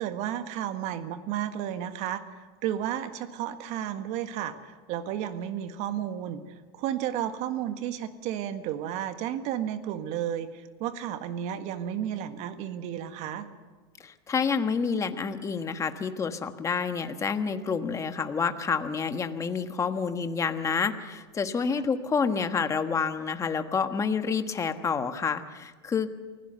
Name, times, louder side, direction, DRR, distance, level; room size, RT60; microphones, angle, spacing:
voice 1, 0.0-2.2 2.6-13.5, right 10 dB, 60° right, 9 dB, 1.6 m, -32 dB
voice 2, 14.0-26.1, left 5 dB, 25° left, 8 dB, 1.4 m, -28 dB
24.5 x 16.0 x 6.8 m, 1.3 s
supercardioid pair, 110°, 13 cm